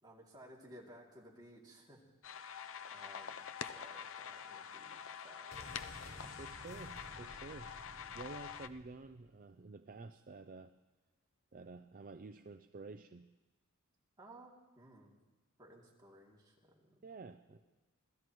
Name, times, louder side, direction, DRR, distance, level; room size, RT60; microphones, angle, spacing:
voice 1, 0.0-5.9 14.2-15.2 15.6-17.1 17.5-17.6, right 1 dB, 20° right, -3 dB, 2.7 m, -58 dB
sound 1, 2.2-8.7, left 7 dB, 65° left, 0.6 m, -46 dB
sound 2, 5.5-9.3 9.5-9.6, left 1 dB, 45° left, 4.2 m, -54 dB
voice 2, 6.4-7.7 8.1-10.7 11.5-13.3 17.0-17.6, right 3 dB, 40° right, 9 dB, 0.5 m, -50 dB
26.0 x 17.5 x 3.1 m, 1.1 s
head